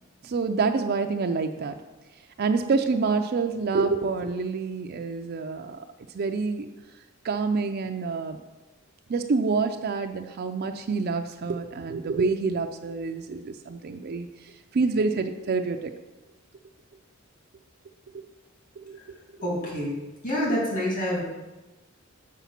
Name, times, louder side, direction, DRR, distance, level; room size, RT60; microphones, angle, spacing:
voice 1, 0.2-1.8 2.4-5.8 6.1-6.7 7.2-8.4 9.1-14.3 14.7-15.9 18.8-19.0, right 4 dB, 50° right, 6 dB, 0.4 m, -27 dB
voice 2, 19.4-19.9 20.2-21.2, equal, 40° left, -4 dB, 2.4 m, -27 dB
7.0 x 4.9 x 5.8 m, 1.1 s
head